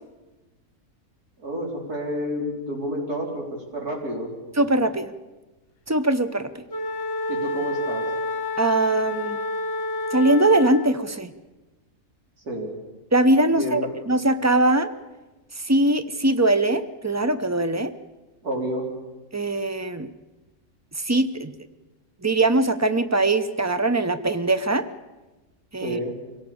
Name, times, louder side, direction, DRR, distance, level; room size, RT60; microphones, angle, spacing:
voice 1, 1.4-3.4 3.7-4.3 7.3-8.0 12.4-12.7 13.5-13.9 18.4-18.9 25.8-26.1, equal, 90° right, -1 dB, 4.8 m, -29 dB
voice 2, 4.6-5.1 5.9-6.6 8.6-9.4 10.1-11.3 13.1-14.9 15.6-17.9 19.3-20.1 21.0-21.5 22.2-24.9 25.7-26.0, right 2 dB, 20° right, 10 dB, 0.5 m, -21 dB
Wind instrument woodwind instrument, 6.7-11.1, left 2 dB, 50° left, 1.5 m, -29 dB
24.5 x 17.5 x 7.1 m, 1.1 s
omnidirectional pair, 1.6 m